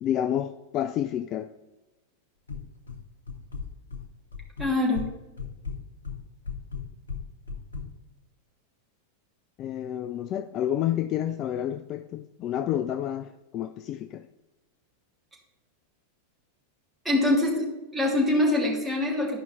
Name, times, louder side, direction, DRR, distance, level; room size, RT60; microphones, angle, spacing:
voice 1, 0.0-1.5 9.6-14.3, left 11 dB, 35° left, 0.3 m, -29 dB
sound 1, 2.5-3.0 3.3-4.0 4.3-5.1 5.4-7.9, left 5 dB, 75° left, 1.0 m, -35 dB
voice 2, 4.6-5.1 17.0-17.7 17.9-19.4, left 1 dB, 5° right, 2.4 m, -24 dB
12.0 x 5.3 x 3.2 m
figure-of-eight pair, 90°, 0 cm